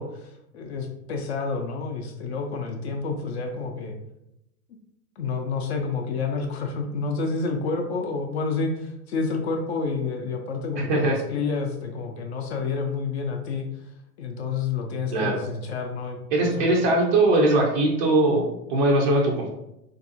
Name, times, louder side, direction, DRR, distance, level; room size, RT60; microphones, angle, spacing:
voice 1, 0.0-4.0 5.2-13.7 14.2-16.7, left 4 dB, 45° left, 3 dB, 0.5 m, -29 dB
voice 2, 16.3-19.5, right 2 dB, 35° right, -1 dB, 0.4 m, -21 dB
3.6 x 2.6 x 2.5 m, 0.86 s
figure-of-eight pair, 95°, 48 cm